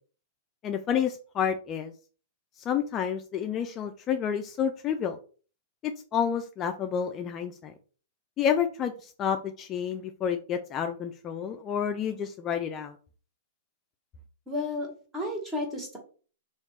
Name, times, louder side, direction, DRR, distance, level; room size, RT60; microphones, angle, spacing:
voice 1, 0.6-1.9 2.6-5.2 5.8-7.7 8.4-13.0, left 8 dB, 30° left, 5 dB, 0.3 m, -29 dB
voice 2, 14.5-14.9 15.1-16.0, left 2 dB, 15° right, 0 dB, 1.4 m, -32 dB
3.1 x 2.4 x 3.2 m, 0.39 s
hypercardioid pair, 120°, 0 cm